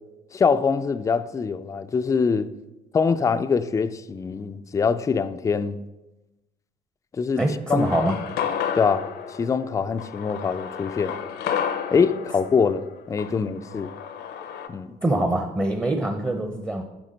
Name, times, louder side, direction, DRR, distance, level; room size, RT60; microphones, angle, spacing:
voice 1, 0.3-2.5 2.9-5.8 7.1-7.4 7.7-8.1 8.7-9.1 9.4-11.1 11.9-13.9 14.7-14.9, left 5 dB, 20° left, 0.3 m, -23 dB
voice 2, 7.4-8.2 15.0-16.8, right 1 dB, 15° right, 0.6 m, -24 dB
sound 1, 7.8-14.7, left 8 dB, 75° left, 0.7 m, -32 dB
9.7 x 3.6 x 5.1 m
cardioid pair, 110°, 17 cm